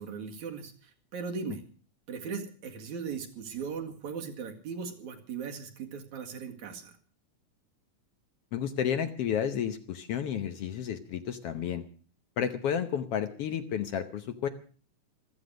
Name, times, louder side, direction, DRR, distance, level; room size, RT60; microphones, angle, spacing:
voice 1, 0.0-1.6 2.1-6.9, right 6 dB, 75° right, 4 dB, 3.4 m, -38 dB
voice 2, 8.5-11.8 12.4-14.5, left 8 dB, 65° left, 10 dB, 1.7 m, -31 dB
15.0 x 14.0 x 6.2 m, 0.40 s
omnidirectional pair, 3.4 m